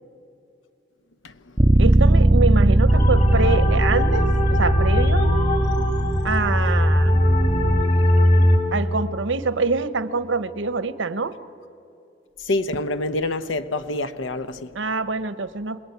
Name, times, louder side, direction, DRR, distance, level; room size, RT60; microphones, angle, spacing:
Bass guitar, 1.6-7.8, right 1 dB, 15° right, 0.5 m, -19 dB
voice 1, 1.8-4.3 4.6-5.3 6.2-7.1 8.7-11.3 14.7-15.8, right 3 dB, 75° right, 0.9 m, -25 dB
sound 1, 2.9-8.6, left 1 dB, 40° left, 2.6 m, -20 dB
voice 2, 12.4-14.7, left 2 dB, 80° left, 1.0 m, -26 dB
27.0 x 20.5 x 9.4 m
head